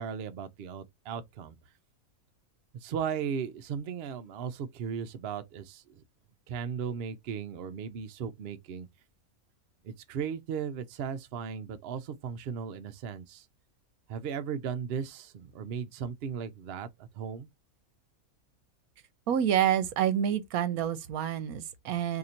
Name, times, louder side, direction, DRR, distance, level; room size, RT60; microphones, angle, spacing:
voice 1, 0.0-1.5 2.7-6.0 6.5-8.9 9.8-13.5 14.1-17.5, right 7 dB, 60° right, 0.6 m, -36 dB
voice 2, 19.3-22.2, right 10 dB, 80° right, 1.1 m, -28 dB
2.8 x 2.6 x 4.2 m
omnidirectional pair, 1.6 m